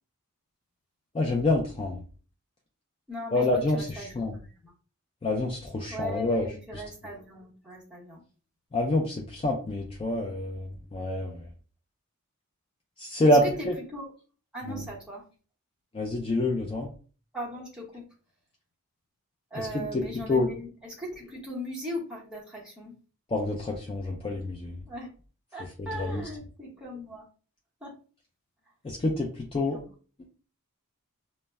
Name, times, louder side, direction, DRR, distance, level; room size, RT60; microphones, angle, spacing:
voice 1, 1.1-2.0 3.3-4.4 5.2-6.5 6.7-6.8 8.7-11.5 13.0-13.7 14.7-14.8 15.9-16.9 19.5-20.5 23.3-24.8 25.8-26.3 28.8-29.8, left 2 dB, 25° left, 0 dB, 0.3 m, -27 dB
voice 2, 3.1-3.4 3.7-4.3 4.6-4.7 5.9-8.2 13.6-13.7 13.9-14.1 14.5-15.2 17.3-18.1 19.5-22.9 24.9-25.1 25.5-27.3 27.8-28.0 29.7-29.8, equal, 5° right, -5 dB, 0.8 m, -39 dB
2.1 x 2.1 x 3.3 m, 0.38 s
head